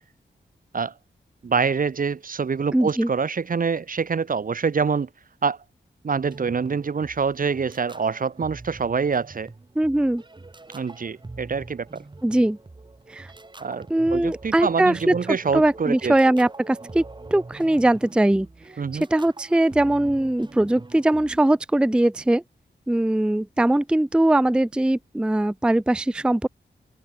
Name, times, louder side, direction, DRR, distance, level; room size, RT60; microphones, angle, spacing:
voice 1, 1.4-5.1 5.4-5.6 6.0-9.5 10.7-12.0 13.6-16.1 18.8-19.0, right 5 dB, 45° right, 0.7 m, -25 dB
voice 2, 2.7-3.1 9.8-10.2 12.2-12.6 13.1-13.3 13.9-15.1 15.5-17.0 17.3-18.5 18.9-22.4 22.9-26.5, right 1 dB, 5° right, 0.4 m, -21 dB
sound 1, 6.2-21.4, right 3 dB, 25° right, 1.0 m, -43 dB
open air
cardioid pair, 55°, 20 cm